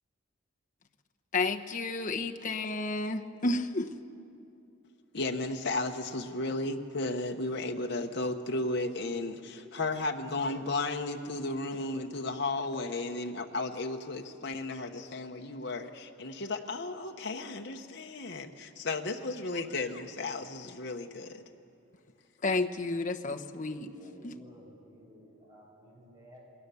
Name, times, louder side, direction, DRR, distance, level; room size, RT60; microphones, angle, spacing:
voice 1, 1.3-3.9 22.4-23.9 24.2-24.3, left 3 dB, 40° left, 3 dB, 0.9 m, -31 dB
voice 2, 5.1-21.4, left 2 dB, 60° left, 3 dB, 1.1 m, -34 dB
voice 3, 23.9-26.4, equal, 20° right, -4 dB, 6.3 m, -54 dB
28.0 x 21.0 x 7.0 m, 2.6 s
head